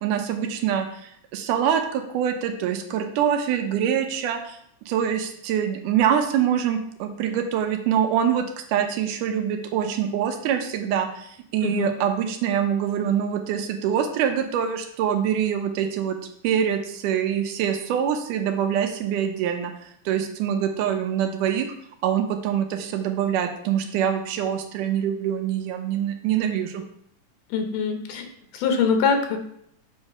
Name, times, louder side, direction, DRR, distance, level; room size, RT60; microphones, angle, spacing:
voice 1, 0.0-4.6 4.9-16.2 16.4-19.7 20.1-21.7 22.0-26.8, right 9 dB, 85° right, 6 dB, 2.3 m, -24 dB
voice 2, 11.6-11.9 27.5-28.3 28.5-29.4, left 5 dB, 90° left, 5 dB, 2.5 m, -23 dB
7.3 x 3.2 x 4.8 m, 0.70 s
omnidirectional pair, 3.6 m